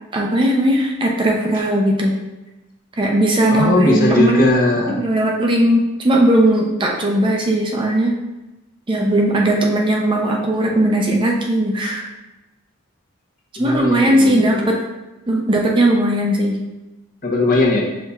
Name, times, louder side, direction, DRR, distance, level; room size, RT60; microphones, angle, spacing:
voice 1, 0.1-2.1 3.0-4.5 4.9-8.2 8.9-12.1 13.6-14.8 15.3-16.6, right 1 dB, 25° right, 0 dB, 0.5 m, -17 dB
voice 2, 3.5-5.0 13.6-14.7 17.2-17.8, left 2 dB, 45° left, -2 dB, 0.9 m, -18 dB
5.6 x 4.1 x 2.3 m, 1.0 s
head